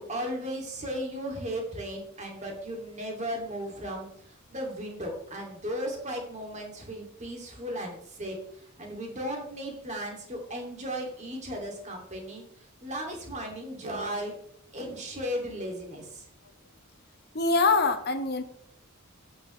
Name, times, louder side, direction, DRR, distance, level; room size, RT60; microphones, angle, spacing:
voice 1, 0.0-14.4 14.7-16.3, equal, 35° right, 1 dB, 2.6 m, -36 dB
voice 2, 17.3-18.4, left 3 dB, 50° left, 9 dB, 1.1 m, -24 dB
13.0 x 9.5 x 3.2 m, 0.69 s
head